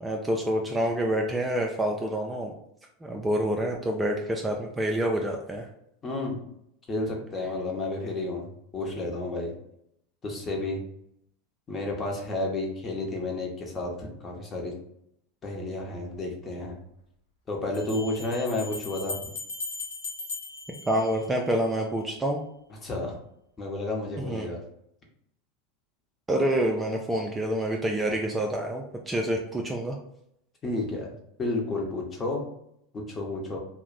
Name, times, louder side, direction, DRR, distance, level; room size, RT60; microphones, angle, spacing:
voice 1, 0.0-2.5 3.0-5.7 20.9-22.4 24.2-24.5 26.3-30.0, right 1 dB, 15° right, 1 dB, 0.3 m, -27 dB
voice 2, 6.0-6.3 6.9-9.5 10.2-10.8 11.7-14.7 15.4-16.8 17.5-19.2 22.8-23.2 23.6-24.6 30.6-31.1 31.4-32.4 32.9-33.6, left 2 dB, 25° left, 0 dB, 0.8 m, -31 dB
Bell, 16.1-16.2 17.7-21.7, left 3 dB, 70° left, 0.6 m, -38 dB
2.4 x 2.0 x 3.8 m, 0.75 s
figure-of-eight pair, 85°, 0 cm